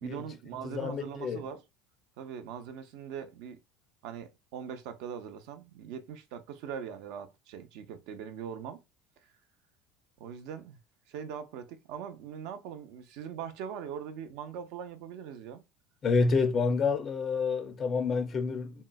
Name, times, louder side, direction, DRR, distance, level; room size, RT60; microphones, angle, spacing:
voice 1, 0.0-1.6 2.2-3.6 4.0-8.8 10.2-10.8 11.1-15.6, right 8 dB, 65° right, 0.5 m, -41 dB
voice 2, 0.6-1.4 16.0-18.8, left 4 dB, 25° left, 0.4 m, -28 dB
3.6 x 2.1 x 2.2 m
cardioid pair, 160°, 0 cm